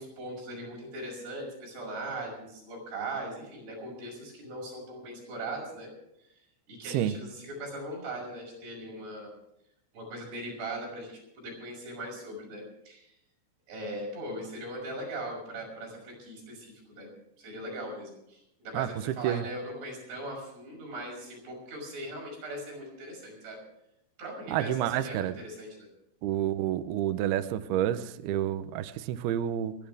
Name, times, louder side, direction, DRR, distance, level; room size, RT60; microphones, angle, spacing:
voice 1, 0.0-5.9 6.2-9.3 9.9-13.1 13.7-17.1 17.4-23.6 24.2-25.9, right 1 dB, 55° right, -1 dB, 7.6 m, -40 dB
voice 2, 24.5-25.4 26.2-29.8, right 12 dB, 85° right, 10 dB, 2.2 m, -29 dB
30.0 x 11.0 x 3.5 m, 0.81 s
omnidirectional pair, 5.6 m